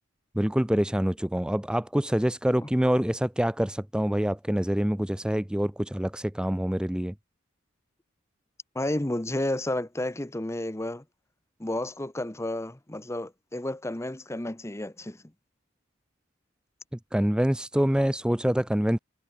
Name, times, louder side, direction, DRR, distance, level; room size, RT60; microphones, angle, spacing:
voice 1, 0.3-7.1 17.1-19.0, equal, 5° right, 0.5 m, -26 dB
voice 2, 8.7-11.0 11.6-15.2, left 1 dB, 15° left, 0.8 m, -31 dB
head